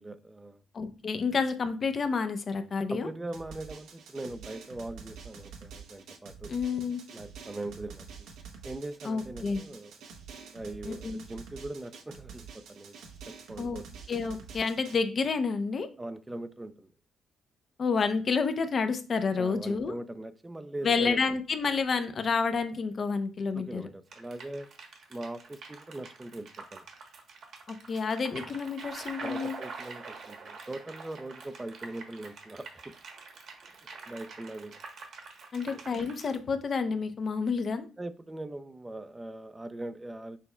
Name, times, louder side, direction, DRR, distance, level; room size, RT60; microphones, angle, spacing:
voice 1, 0.0-0.6 2.9-6.5 7.1-8.3 8.6-9.9 10.5-13.0 13.3-13.9 16.0-16.9 19.4-21.2 23.5-24.7 25.1-26.9 29.2-33.0 34.1-34.8 35.6-35.8 38.0-40.4, right 2 dB, 15° right, 0.4 m, -41 dB
voice 2, 0.7-3.1 6.5-7.0 9.0-9.6 10.8-11.2 13.6-13.8 14.1-15.9 17.8-20.0 20.8-23.8 27.7-29.6 35.5-37.9, left 5 dB, 45° left, 0.6 m, -29 dB
Drum, 3.3-15.0, right 6 dB, 85° right, 0.7 m, -47 dB
sound 1, 24.1-36.4, right 4 dB, 65° right, 1.1 m, -45 dB
6.1 x 3.3 x 2.2 m
cardioid pair, 90°, 0 cm